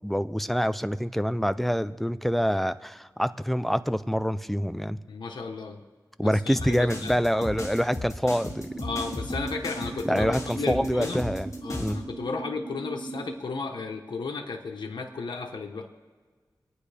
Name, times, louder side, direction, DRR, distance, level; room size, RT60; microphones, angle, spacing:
voice 1, 0.0-5.0 6.2-8.8 10.0-11.5 11.8-12.0, equal, ahead, 13 dB, 0.6 m, -26 dB
voice 2, 5.1-5.8 6.2-7.4 8.8-11.2 11.6-15.9, left 4 dB, 80° left, 2 dB, 1.1 m, -34 dB
sound 1, 6.6-12.0, left 2 dB, 45° left, 2.0 m, -36 dB
sound 2, 8.3-13.3, right 3 dB, 35° right, 1.4 m, -38 dB
25.5 x 9.7 x 3.4 m, 1.5 s
cardioid pair, 50°, 8 cm